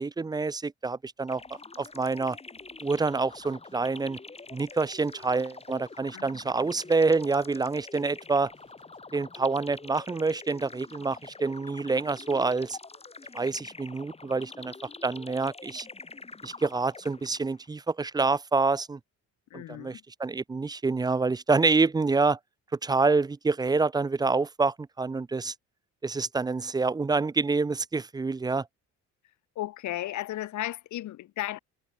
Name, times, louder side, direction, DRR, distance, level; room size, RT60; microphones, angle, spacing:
voice 1, 0.0-1.4 1.8-2.4 2.8-4.2 4.5-8.5 9.1-12.8 13.3-14.7 15.0-15.9 16.4-19.0 19.5-22.4 22.8-25.5 26.0-28.7, right 4 dB, 15° right, 0.4 m, -27 dB
sound 1, 1.3-17.7, left 3 dB, 20° left, 1.5 m, -46 dB
sound 2, 1.3-2.1 2.5-6.0 6.4-9.0, right 15 dB, 90° right, 6.8 m, -70 dB
voice 2, 19.5-20.0 29.5-31.6, left 14 dB, 70° left, 1.1 m, -34 dB
cardioid pair, 90°, 30 cm